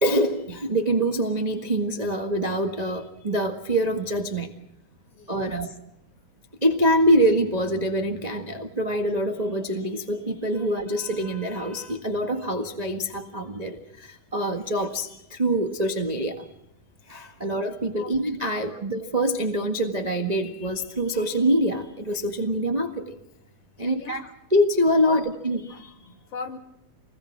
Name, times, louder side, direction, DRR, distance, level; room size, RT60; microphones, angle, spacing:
voice 1, 0.0-4.5 5.3-5.7 6.6-16.5 17.1-23.1 23.8-24.2 24.5-25.9, equal, 25° right, 3 dB, 0.8 m, -25 dB
voice 2, 5.1-5.8 17.4-17.5 17.9-18.1 18.6-18.8 23.8-24.3 25.0-25.2 25.7-26.6, left 5 dB, 45° left, 3 dB, 3.4 m, -40 dB
28.0 x 21.0 x 6.1 m, 0.81 s
omnidirectional pair, 3.9 m